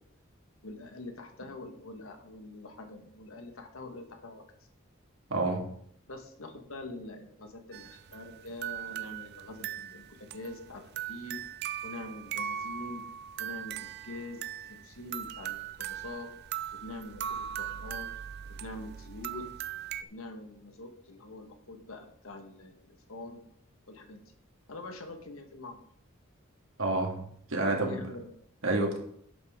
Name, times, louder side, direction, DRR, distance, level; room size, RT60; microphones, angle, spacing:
voice 1, 0.6-4.4 6.1-11.4 11.8-13.1 13.4-16.3 16.8-18.1 18.5-19.4 20.1-23.4 23.9-24.2 24.7-25.8 27.6-28.3, left 2 dB, 90° left, 5 dB, 1.5 m, -44 dB
voice 2, 5.3-5.6 26.8-27.2 27.5-28.0 28.6-29.0, right 2 dB, 80° right, 1 dB, 2.0 m, -28 dB
sound 1, 7.7-20.0, right 10 dB, 50° right, 0.4 m, -39 dB
11.0 x 8.2 x 3.7 m, 0.67 s
head